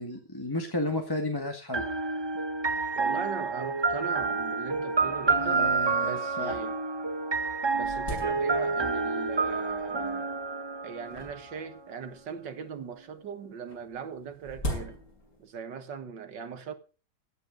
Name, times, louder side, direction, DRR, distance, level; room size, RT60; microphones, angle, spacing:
voice 1, 0.0-1.9 5.4-6.6, left 1 dB, 15° left, 1.7 m, -32 dB
sound 1, 1.7-11.5, right 4 dB, 30° right, 0.4 m, -29 dB
voice 2, 3.0-6.8 7.7-10.4 10.8-15.0 15.4-16.7, right 6 dB, 80° right, 2.1 m, -39 dB
sound 2, 4.9-5.0 5.2-5.3 6.0-6.1 6.7-6.8 7.2-9.0 9.7-10.1 11.1-12.4 13.7-15.5, left 1 dB, 45° left, 7.8 m, -39 dB
16.0 x 9.2 x 5.2 m
omnidirectional pair, 1.9 m